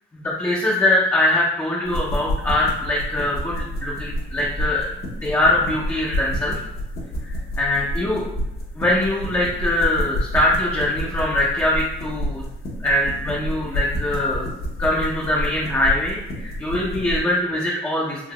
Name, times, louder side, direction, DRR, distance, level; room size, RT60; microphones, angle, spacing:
voice 1, 0.1-4.9 5.2-6.6 7.2-7.3 7.6-8.3 8.8-12.4 12.8-14.5 14.8-18.3, left 1 dB, 10° left, -5 dB, 0.6 m, -22 dB
sound 1, 1.8-17.2, equal, 50° left, 1.0 m, -29 dB
3.5 x 2.8 x 2.3 m, 0.89 s
cardioid pair, 90°, 20 cm